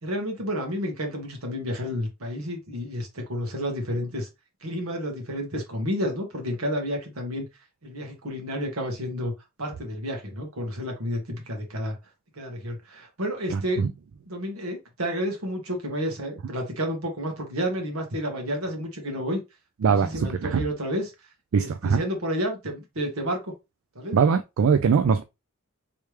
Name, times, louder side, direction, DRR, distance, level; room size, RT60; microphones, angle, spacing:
voice 1, 0.0-4.3 4.6-7.5 7.8-9.3 9.6-12.0 12.3-13.8 14.3-19.4 19.8-21.1 21.5-23.5 23.9-24.2, equal, 90° right, 1.5 m, -30 dB
voice 2, 13.5-13.9 19.8-20.6 21.5-22.0 24.1-25.2, right 6 dB, 75° right, 0.4 m, -22 dB
3.3 x 3.1 x 3.2 m
head